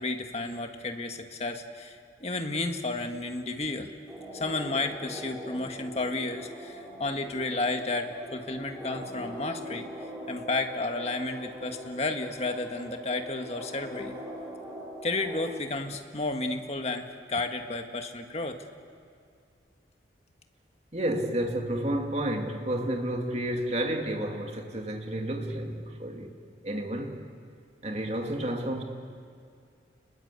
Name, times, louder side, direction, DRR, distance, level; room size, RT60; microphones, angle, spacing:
voice 1, 0.0-3.9 4.3-9.9 10.3-14.1 15.0-18.6, left 2 dB, 35° left, 1.7 m, -32 dB
sound 1, 4.1-15.6, equal, 5° right, 5.9 m, -42 dB
voice 2, 20.9-26.3 26.6-27.2 27.8-28.8, right 1 dB, 35° right, 2.5 m, -31 dB
29.5 x 21.0 x 8.4 m
head